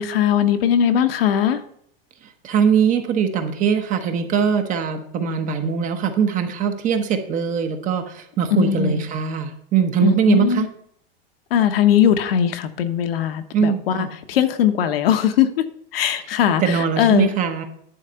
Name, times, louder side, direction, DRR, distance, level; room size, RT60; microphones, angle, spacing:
voice 1, 0.0-1.6 8.5-9.0 10.0-10.7 11.5-15.6 15.9-17.3, left 9 dB, 75° left, 7 dB, 1.2 m, -19 dB
voice 2, 2.4-10.6 13.5-14.1 16.6-17.6, right 7 dB, 25° right, 6 dB, 1.0 m, -21 dB
10.5 x 4.1 x 6.8 m, 0.68 s
supercardioid pair, 145°, 29 cm